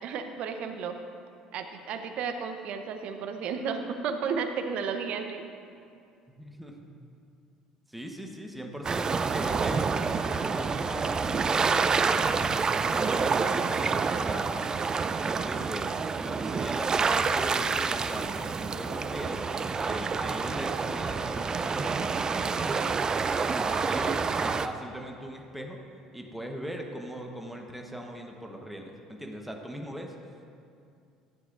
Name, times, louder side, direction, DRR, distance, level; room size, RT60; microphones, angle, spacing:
voice 1, 0.0-1.0 1.5-5.4 19.9-20.0, right 6 dB, 60° right, 7 dB, 0.8 m, -33 dB
voice 2, 6.4-7.0 7.9-12.6 12.9-14.7 15.2-19.5 19.8-23.0 23.4-25.8 26.1-30.1, equal, 5° right, 1 dB, 1.1 m, -39 dB
sound 1, 8.8-24.7, right 5 dB, 30° right, 0.4 m, -28 dB
13.5 x 9.2 x 2.6 m, 2.5 s
hypercardioid pair, 65°, 2 cm